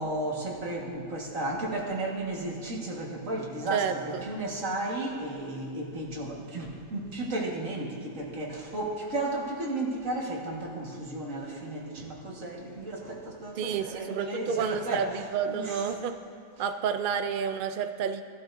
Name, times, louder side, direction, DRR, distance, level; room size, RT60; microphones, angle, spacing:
voice 1, 0.0-15.2 15.5-15.9, right 2 dB, 60° right, -2 dB, 2.0 m, -34 dB
voice 2, 3.7-4.3 13.6-16.2 16.6-18.2, right 7 dB, 80° right, 8 dB, 0.4 m, -30 dB
17.5 x 12.5 x 2.6 m, 2.2 s
omnidirectional pair, 1.5 m